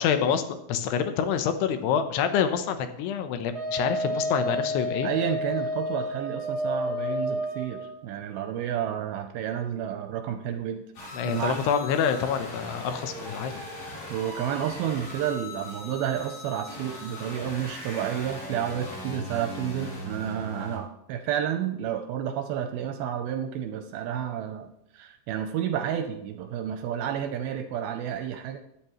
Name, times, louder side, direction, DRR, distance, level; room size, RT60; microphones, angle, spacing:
voice 1, 0.0-5.1 11.1-13.6, left 7 dB, 80° left, 9 dB, 2.9 m, -27 dB
Wind instrument woodwind instrument, 3.5-7.9, equal, 35° right, 0.5 m, -30 dB
voice 2, 5.0-10.8 11.2-11.6 14.1-28.6, right 9 dB, 80° right, 7 dB, 2.3 m, -31 dB
sound 1, 11.0-20.8, left 1 dB, 65° left, 5.9 m, -39 dB
14.0 x 10.5 x 3.0 m, 0.77 s
omnidirectional pair, 4.8 m